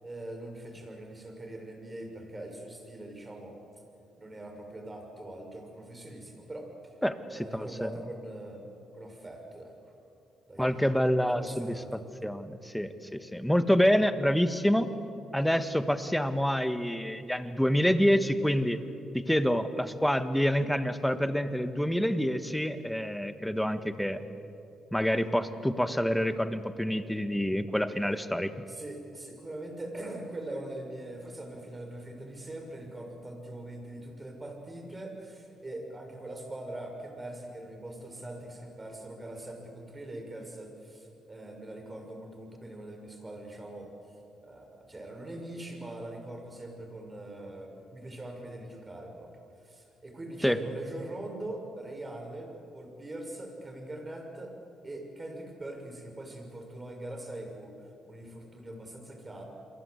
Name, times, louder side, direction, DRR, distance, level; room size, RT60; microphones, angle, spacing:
voice 1, 0.0-3.6 4.2-6.7 7.3-8.7 8.9-9.9 10.5-10.9 11.2-12.0 28.7-43.9 44.4-49.3 49.6-54.5 54.8-57.7 58.1-59.4, right 1 dB, 20° right, 3 dB, 6.3 m, -42 dB
voice 2, 7.0-7.9 10.6-14.9 15.3-18.8 19.1-24.2 24.9-28.6 50.4-50.6, equal, 5° left, 10 dB, 1.6 m, -27 dB
29.0 x 23.0 x 8.2 m, 2.7 s
cardioid pair, 90°, 0 cm